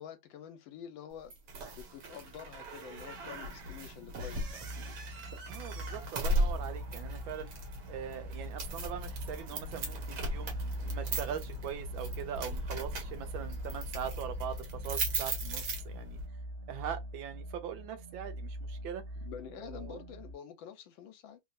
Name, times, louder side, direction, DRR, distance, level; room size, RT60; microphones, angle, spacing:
voice 1, 0.0-1.3 1.7-4.6 19.2-21.4, left 8 dB, 85° left, 1.5 m, -47 dB
sound 1, 1.3-16.3, right 1 dB, 65° right, 1.5 m, -38 dB
sound 2, 4.3-20.3, right 1 dB, 40° right, 0.8 m, -43 dB
voice 2, 5.5-7.5 7.9-10.5 10.8-16.2 16.7-19.0 19.5-20.0, right 9 dB, 90° right, 1.4 m, -41 dB
3.4 x 2.7 x 2.5 m
omnidirectional pair, 2.1 m